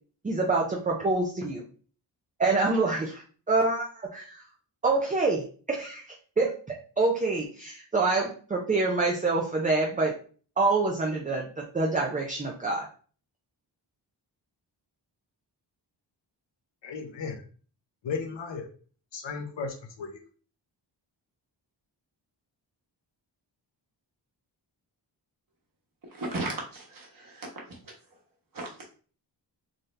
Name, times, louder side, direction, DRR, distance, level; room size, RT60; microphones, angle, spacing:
voice 1, 0.2-1.6 2.4-3.9 4.1-4.4 4.8-6.0 6.4-10.1 10.6-12.9, right 3 dB, 20° right, 0.5 m, -26 dB
voice 2, 16.8-17.4 18.0-18.7 19.1-20.1, left 5 dB, 75° left, 0.9 m, -35 dB
voice 3, 26.1-27.9 28.5-28.8, right 2 dB, 50° right, 1.3 m, -36 dB
3.8 x 2.7 x 3.2 m
wide cardioid pair, 120°, 44 cm